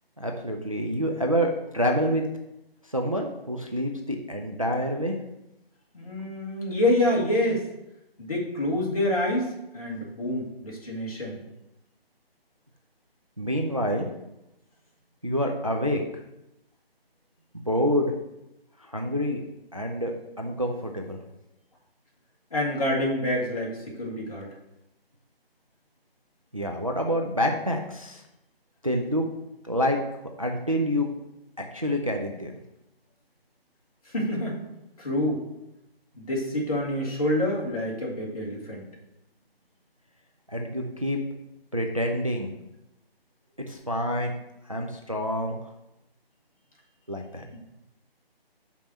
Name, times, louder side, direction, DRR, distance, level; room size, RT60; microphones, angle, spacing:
voice 1, 0.2-2.3 2.9-5.2 13.4-14.1 15.2-16.0 17.5-18.1 18.9-19.4 19.7-21.2 26.5-28.2 28.8-29.3 29.6-30.0 30.4-31.1 31.6-32.5 40.5-41.2 41.7-42.5 43.7-44.4 44.7-45.7 47.1-47.5, equal, 35° right, 2 dB, 0.4 m, -27 dB
voice 2, 5.9-7.6 8.2-11.4 22.5-24.5 34.0-34.6 35.0-35.4 36.2-38.8 47.5-47.6, left 1 dB, 35° left, -4 dB, 1.7 m, -27 dB
5.4 x 4.3 x 5.9 m, 0.89 s
figure-of-eight pair, 175°, 31 cm